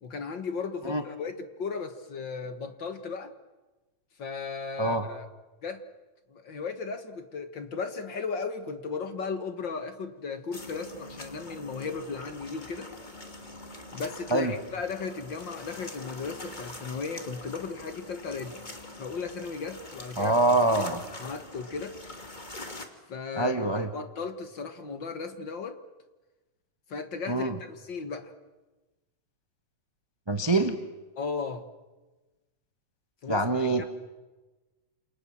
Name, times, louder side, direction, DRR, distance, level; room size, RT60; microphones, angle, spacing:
voice 1, 0.0-3.3 4.2-5.3 5.6-5.8 6.3-12.9 13.9-18.6 19.0-20.3 20.7-20.9 21.2-22.0 23.1-25.8 26.9-28.3 31.2-31.7 33.2-33.8, left 5 dB, 45° left, 9 dB, 1.9 m, -36 dB
sound 1, 10.5-22.9, left 2 dB, 15° left, 2.3 m, -44 dB
voice 2, 20.2-21.0 23.4-23.9 27.3-27.5 30.3-30.8 33.3-33.8, right 2 dB, 25° right, 7 dB, 0.5 m, -25 dB
28.5 x 28.5 x 7.4 m, 1.2 s
omnidirectional pair, 3.4 m